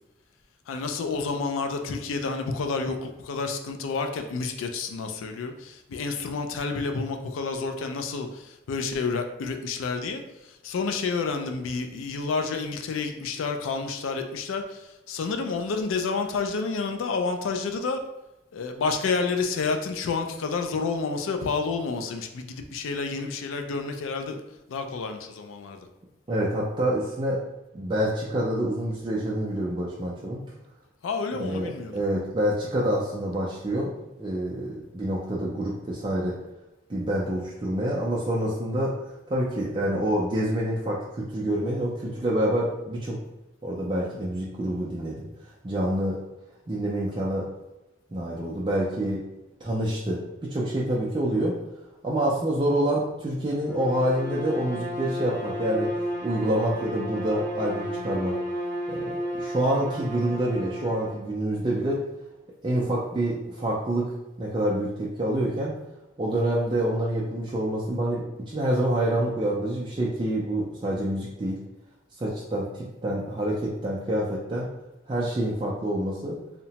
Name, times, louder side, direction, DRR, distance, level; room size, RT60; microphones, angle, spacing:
voice 1, 0.7-10.2 10.6-18.0 18.5-24.4 24.7-25.8 31.0-31.9, left 4 dB, 85° left, 6 dB, 0.3 m, -29 dB
voice 2, 26.3-27.4 27.7-30.4 31.3-33.9 34.2-36.3 36.9-38.9 39.3-43.2 43.6-45.2 45.6-46.2 46.7-47.5 48.1-49.2 49.6-51.5 52.0-55.9 56.2-58.4 58.9-62.0 62.6-64.0 64.4-65.7 66.2-71.6 72.2-74.7 75.1-76.4, right 1 dB, 25° right, -5 dB, 0.3 m, -27 dB
Bowed string instrument, 53.6-61.2, equal, 20° left, 1.3 m, -33 dB
2.8 x 2.1 x 2.8 m, 0.97 s
head